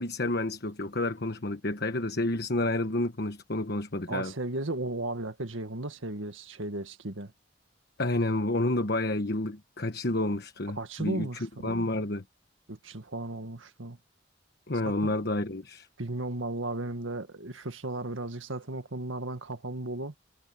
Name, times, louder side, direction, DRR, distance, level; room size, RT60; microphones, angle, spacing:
voice 1, 0.0-4.3 8.0-11.3 11.6-12.2 14.7-15.9, left 2 dB, 55° left, 1.3 m, -29 dB
voice 2, 4.1-7.3 10.7-11.7 12.7-14.0 14.8-15.1 16.0-20.1, right 2 dB, 85° right, 1.9 m, -35 dB
head